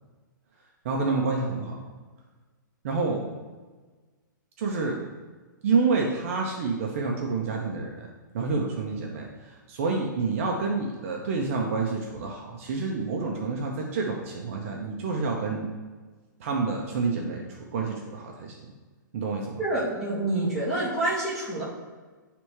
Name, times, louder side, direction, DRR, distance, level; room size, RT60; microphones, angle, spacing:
voice 1, 0.8-1.8 2.8-3.3 4.6-5.0 5.6-8.1 8.3-15.7 16.4-18.7 19.1-19.6, right 4 dB, 40° right, 0 dB, 0.7 m, -28 dB
voice 2, 19.6-21.6, right 2 dB, 5° left, -9 dB, 1.6 m, -27 dB
9.7 x 3.4 x 3.1 m, 1.4 s
hypercardioid pair, 160°, 11 cm